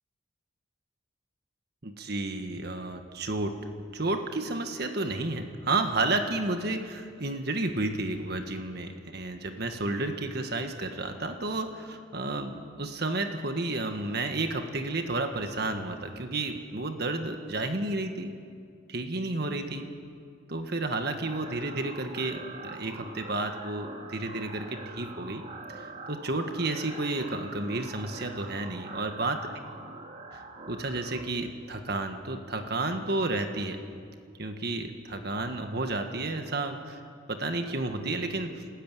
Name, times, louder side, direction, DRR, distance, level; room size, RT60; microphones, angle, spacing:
voice 1, 1.8-3.6 3.9-18.3 18.9-19.9 20.5-25.4 25.7-29.5 30.3-33.8 34.4-37.0 37.3-38.6, right 2 dB, 50° right, 5 dB, 1.6 m, -31 dB
sound 1, 21.2-31.2, right 3 dB, 35° right, 2.1 m, -44 dB
29.0 x 13.0 x 9.3 m, 2.3 s
head